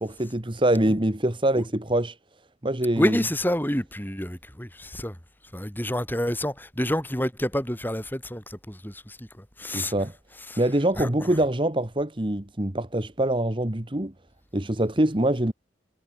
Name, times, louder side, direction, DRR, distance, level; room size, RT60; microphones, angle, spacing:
voice 1, 0.0-2.1 2.6-3.2 9.7-10.1 10.6-14.1 14.5-15.5, right 1 dB, 30° right, 1.5 m, -24 dB
voice 2, 3.0-5.2 5.5-9.3 9.6-9.9 11.0-11.1, left 1 dB, 10° left, 6.7 m, -28 dB
head